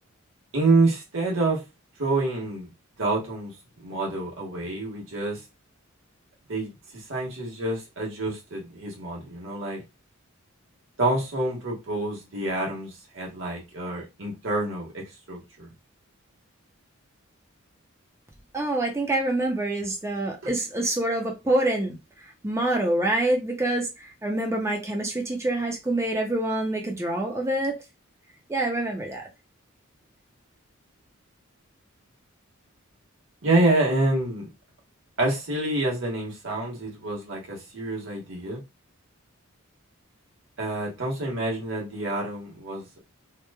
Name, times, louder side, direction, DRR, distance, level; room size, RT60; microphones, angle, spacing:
voice 1, 0.5-1.6 2.0-2.7 3.0-3.5 3.8-5.4 6.5-9.8 11.0-15.7 20.4-20.5 33.4-34.5 35.2-38.6 40.6-43.0, right 2 dB, 65° right, 1.2 m, -27 dB
voice 2, 18.5-27.8 28.5-29.3, right 1 dB, 15° right, 0.5 m, -26 dB
2.9 x 2.1 x 2.2 m
head